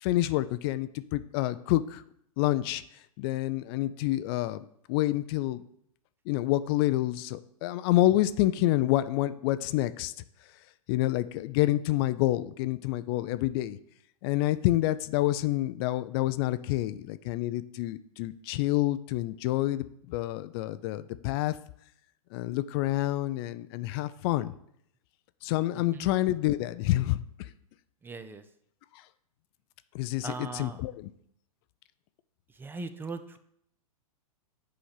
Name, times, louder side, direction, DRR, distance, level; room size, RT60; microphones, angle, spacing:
voice 1, 0.0-2.0 2.4-2.8 3.2-5.6 6.3-10.1 10.9-13.8 14.2-21.6 22.3-24.5 25.4-27.2 29.9-31.1, left 15 dB, 40° left, 14 dB, 0.5 m, -28 dB
voice 2, 28.0-28.4 30.2-30.8 32.6-33.4, right 3 dB, 10° right, 11 dB, 0.5 m, -39 dB
8.5 x 5.1 x 5.7 m, 0.70 s
hypercardioid pair, 120°, 19 cm